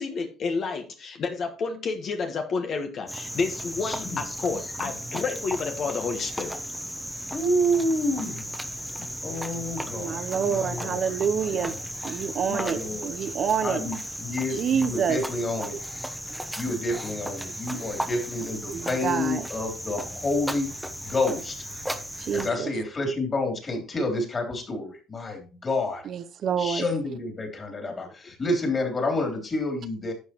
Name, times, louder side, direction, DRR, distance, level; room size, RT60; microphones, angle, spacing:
voice 1, 0.0-6.6 9.0-9.1 28.1-28.2, left 4 dB, 50° left, 1.3 m, -30 dB
Cricket, 3.1-22.5, equal, ahead, 1.0 m, -35 dB
voice 2, 3.8-4.2 7.3-8.4 9.2-11.5 12.5-13.2 13.6-15.8 16.6-20.7 21.0-21.7 22.3-26.1 26.6-30.1, left 1 dB, 30° left, 3.2 m, -29 dB
voice 3, 9.9-11.7 12.0-14.0 14.5-15.2 18.7-19.5 22.2-22.7 26.1-26.8, right 7 dB, 55° right, 0.7 m, -27 dB
11.5 x 7.2 x 3.0 m
cardioid pair, 110°, 0 cm